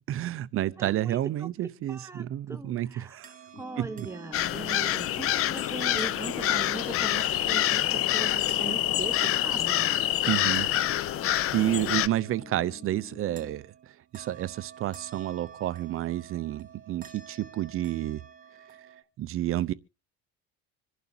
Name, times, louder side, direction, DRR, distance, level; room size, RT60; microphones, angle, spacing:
voice 1, 0.0-3.3 3.8-4.1 10.3-10.7 11.5-13.7 14.1-18.2 19.2-19.7, right 13 dB, 45° right, 0.6 m, -30 dB
voice 2, 0.8-3.2 3.6-9.9, right 3 dB, 10° right, 0.9 m, -40 dB
sound 1, 3.2-19.0, right 7 dB, 25° right, 1.5 m, -50 dB
sound 2, 3.5-13.5, left 6 dB, 30° left, 2.6 m, -49 dB
sound 3, 4.3-12.1, left 12 dB, 45° left, 0.6 m, -26 dB
26.0 x 11.0 x 2.7 m
cardioid pair, 145°, 31 cm